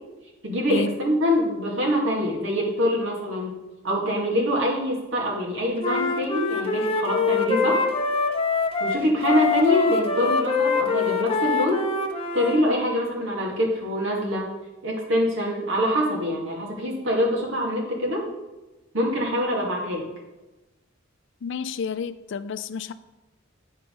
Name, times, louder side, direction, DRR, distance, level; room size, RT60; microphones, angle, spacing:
voice 1, 0.4-3.6 3.8-7.8 8.8-11.9 12.3-14.5 14.8-18.3 18.9-20.1, equal, 70° right, -2 dB, 2.2 m, -24 dB
Wind instrument woodwind instrument, 5.8-12.6, left 4 dB, 30° left, 0.7 m, -24 dB
voice 2, 21.4-22.9, left 5 dB, 65° left, 13 dB, 0.4 m, -30 dB
10.5 x 4.5 x 5.3 m, 1.1 s
head